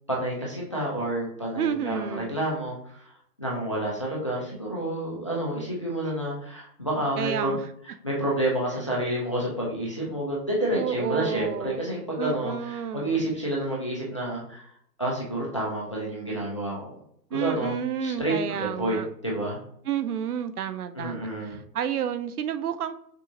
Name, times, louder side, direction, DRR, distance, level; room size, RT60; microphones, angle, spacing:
voice 1, 0.1-3.0 3.4-7.6 8.0-14.7 15.0-16.9 17.3-17.8 18.0-19.6 20.9-21.6, right 1 dB, 20° left, -4 dB, 0.4 m, -29 dB
voice 2, 1.6-2.4 7.2-7.6 10.7-11.8 12.2-13.2 17.3-19.1 19.9-23.0, right 9 dB, 65° right, 12 dB, 0.6 m, -30 dB
6.0 x 2.5 x 2.8 m, 0.65 s
hypercardioid pair, 150°, 49 cm